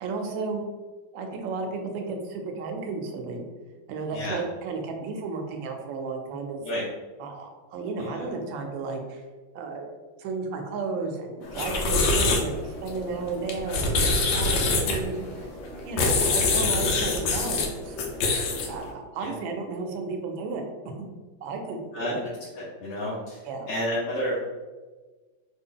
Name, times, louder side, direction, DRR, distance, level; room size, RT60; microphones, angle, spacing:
voice 1, 0.0-0.7 1.1-3.5 3.9-6.6 7.2-9.2 9.5-9.9 10.2-14.0 14.3-15.5 15.9-18.0 18.7-20.6 21.0-21.1 21.4-22.2 23.4-23.7, right 4 dB, 80° right, 3 dB, 1.3 m, -33 dB
sound 1, 11.4-18.9, left 3 dB, 75° left, 1.2 m, -25 dB
voice 2, 22.5-23.4 23.7-24.4, equal, 55° left, -8 dB, 0.8 m, -30 dB
3.4 x 2.3 x 3.7 m, 1.3 s
omnidirectional pair, 2.1 m